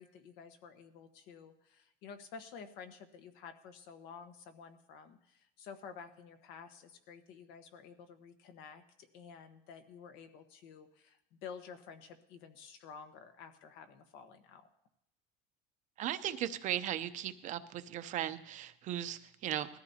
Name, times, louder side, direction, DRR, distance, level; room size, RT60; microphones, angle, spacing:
voice 1, 0.0-14.7, left 6 dB, 70° left, 7 dB, 1.3 m, -51 dB
voice 2, 16.0-19.7, right 11 dB, 40° right, 10 dB, 0.7 m, -37 dB
20.0 x 13.5 x 2.8 m, 0.85 s
cardioid pair, 160°, 19 cm